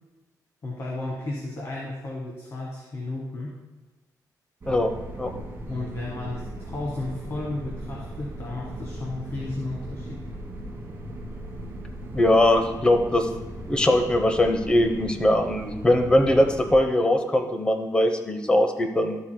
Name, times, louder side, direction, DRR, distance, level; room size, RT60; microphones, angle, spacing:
voice 1, 0.6-3.5 5.7-10.2, left 2 dB, 40° left, -2 dB, 1.3 m, -33 dB
sound 1, 4.6-16.8, right 1 dB, 35° right, 1.4 m, -38 dB
voice 2, 12.1-13.3 13.6-19.2, left 1 dB, 15° left, 5 dB, 0.8 m, -21 dB
12.5 x 7.5 x 2.2 m, 1.2 s
wide cardioid pair, 155°, 7 cm